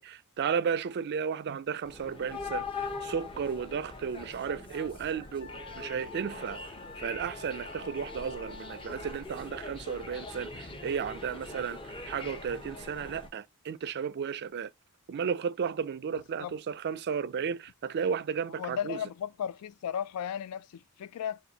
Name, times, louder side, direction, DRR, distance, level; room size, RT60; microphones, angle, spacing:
voice 1, 0.0-5.5 5.8-6.6 7.0-14.7 15.1-19.0, right 6 dB, 50° right, 0.4 m, -34 dB
sound 1, 1.8-13.3, left 3 dB, 25° left, 0.7 m, -42 dB
Wind instrument woodwind instrument, 5.4-9.2, left 3 dB, 70° left, 0.7 m, -48 dB
voice 2, 18.6-21.4, left 9 dB, 85° left, 0.3 m, -35 dB
4.3 x 2.6 x 3.9 m
head